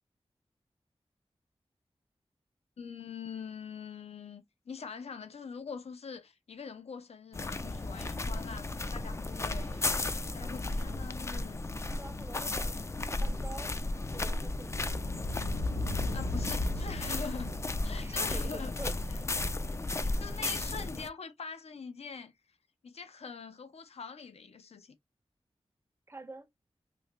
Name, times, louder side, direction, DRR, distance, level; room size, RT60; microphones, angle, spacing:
voice 1, 2.8-9.9 10.3-11.6 15.9-17.5 17.8-18.7 20.0-22.3 22.8-25.0, left 5 dB, 90° left, 0.6 m, -44 dB
sound 1, 7.3-21.1, left 2 dB, 25° left, 0.3 m, -34 dB
voice 2, 12.0-12.8 13.2-13.7 14.1-14.9 18.0-19.0 19.2-19.4 26.1-26.5, right 2 dB, 25° right, 0.6 m, -46 dB
sound 2, 13.1-20.0, left 2 dB, 60° left, 0.9 m, -39 dB
2.8 x 2.5 x 3.2 m
wide cardioid pair, 80°, 10 cm